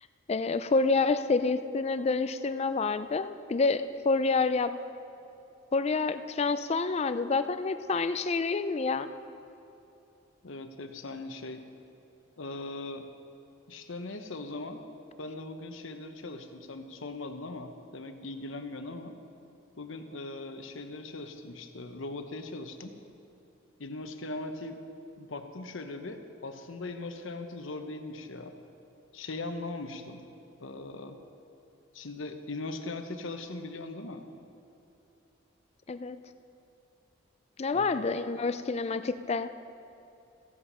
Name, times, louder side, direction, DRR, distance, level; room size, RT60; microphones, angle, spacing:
voice 1, 0.3-4.8 5.7-9.1 35.9-36.2 37.6-39.5, left 4 dB, 30° left, 12 dB, 0.4 m, -28 dB
voice 2, 10.4-11.6 12.4-13.1 13.7-14.8 15.2-19.1 19.8-23.0 23.8-24.8 25.2-28.5 29.1-30.2 30.6-31.2 31.9-34.2 37.7-37.9, left 2 dB, 65° left, 7 dB, 0.9 m, -40 dB
15.0 x 8.6 x 5.5 m, 2.9 s
head